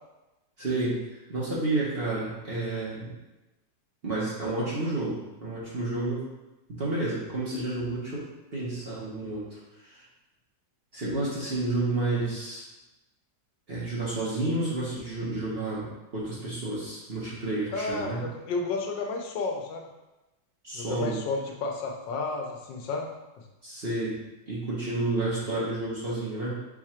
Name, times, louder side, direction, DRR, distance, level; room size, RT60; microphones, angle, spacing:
voice 1, 0.6-3.1 4.0-6.3 6.7-8.2 8.5-10.0 10.9-12.6 13.7-18.2 20.6-21.1 23.6-24.1 24.5-26.6, right 2 dB, 40° right, -7 dB, 1.1 m, -30 dB
voice 2, 17.7-19.9 20.7-23.1, left 3 dB, 85° left, 2 dB, 1.4 m, -32 dB
4.8 x 2.4 x 4.3 m, 1.0 s
omnidirectional pair, 1.9 m